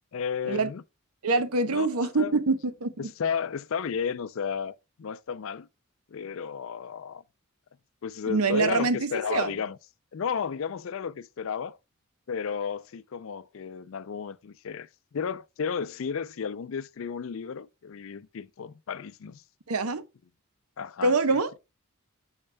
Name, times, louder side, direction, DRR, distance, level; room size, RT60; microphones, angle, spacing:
voice 1, 0.1-0.8 1.7-1.9 2.2-2.3 3.0-5.7 6.1-7.2 8.0-9.8 10.1-11.8 12.3-19.4 20.8-21.6, left 6 dB, 65° left, 0.4 m, -33 dB
voice 2, 1.2-3.1 8.3-9.5 19.7-20.0 21.0-21.5, right 3 dB, 85° right, 0.8 m, -25 dB
8.8 x 6.5 x 2.2 m
head